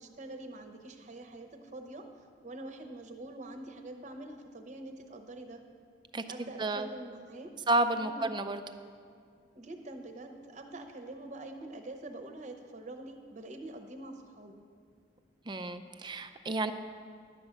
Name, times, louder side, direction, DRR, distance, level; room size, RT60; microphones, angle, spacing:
voice 1, 0.0-2.1 2.4-5.6 6.3-7.5 8.0-8.3 9.5-14.6, right 2 dB, 40° right, 5 dB, 0.8 m, -45 dB
voice 2, 6.1-6.9 7.7-8.6 15.5-16.7, right 2 dB, 25° right, 9 dB, 0.4 m, -31 dB
11.5 x 7.4 x 5.1 m, 2.3 s
head